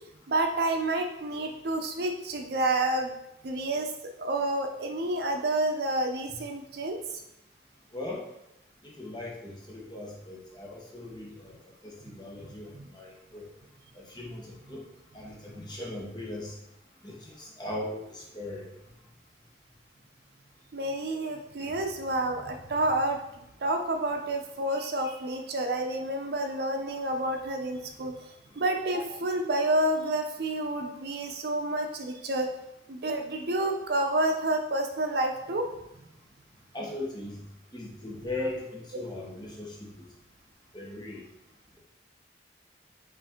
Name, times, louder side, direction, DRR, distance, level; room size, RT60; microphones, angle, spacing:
voice 1, 0.3-3.2 3.4-3.9 4.2-7.2 12.7-12.9 20.7-28.3 28.6-32.5 32.9-35.7, right 1 dB, 60° right, 4 dB, 0.5 m, -29 dB
voice 2, 7.9-8.2 8.8-11.5 11.8-13.5 13.9-14.8 15.1-16.6 17.0-18.7 21.6-21.8 36.7-37.4 37.7-39.9 40.7-41.2, left 2 dB, 25° left, -3 dB, 1.0 m, -39 dB
5.0 x 2.6 x 3.6 m, 0.83 s
head